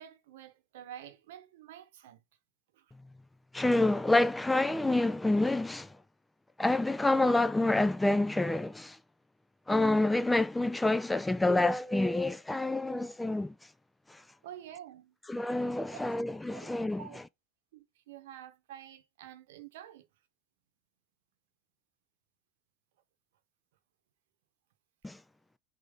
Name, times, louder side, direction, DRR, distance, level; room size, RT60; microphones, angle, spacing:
voice 1, 0.0-2.2 2.7-2.9 14.4-15.2 15.9-16.0 16.5-16.7 17.0-17.2 17.7-20.1, right 11 dB, 80° right, 0.9 m, -48 dB
voice 2, 3.5-6.0 6.6-9.0 9.7-13.5 14.1-14.2 15.3-17.1 25.0-25.2, left 2 dB, 10° left, 0.3 m, -28 dB
5.1 x 2.7 x 3.7 m
hypercardioid pair, 100°, 0 cm